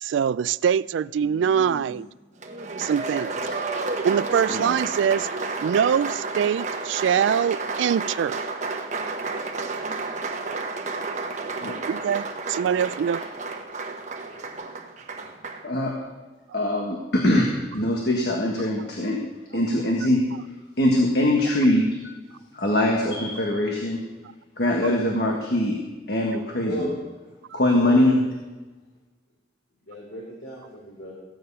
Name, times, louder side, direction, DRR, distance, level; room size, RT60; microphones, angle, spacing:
voice 1, 0.0-2.1 2.8-3.4 4.0-5.3 5.6-8.4 11.9-13.3, right 8 dB, 90° right, 0.3 m, -23 dB
Applause, 2.4-15.7, right 3 dB, 40° right, 1.1 m, -31 dB
voice 2, 15.6-16.0 16.5-19.2 19.5-20.3 20.8-22.1 22.5-24.0 24.6-25.8 26.1-26.9 27.5-28.2, left 1 dB, 60° left, 1.5 m, -22 dB
voice 3, 26.6-26.9 27.7-28.1 29.9-31.1, equal, 80° left, 3.3 m, -34 dB
15.5 x 9.2 x 5.5 m
head